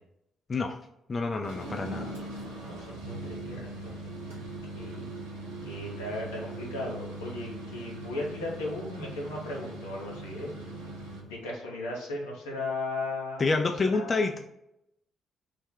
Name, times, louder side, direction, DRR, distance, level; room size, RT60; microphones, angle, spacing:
voice 1, 1.1-2.1 13.4-14.4, left 3 dB, 40° left, 4 dB, 0.3 m, -28 dB
sound 1, 1.3-11.3, right 2 dB, 90° right, 0.6 m, -40 dB
voice 2, 2.5-4.1 4.8-5.0 5.6-10.5 11.2-13.4 13.9-14.2, left 2 dB, 85° left, -3 dB, 0.9 m, -36 dB
3.3 x 2.1 x 3.6 m, 0.82 s
hypercardioid pair, 45°, 0 cm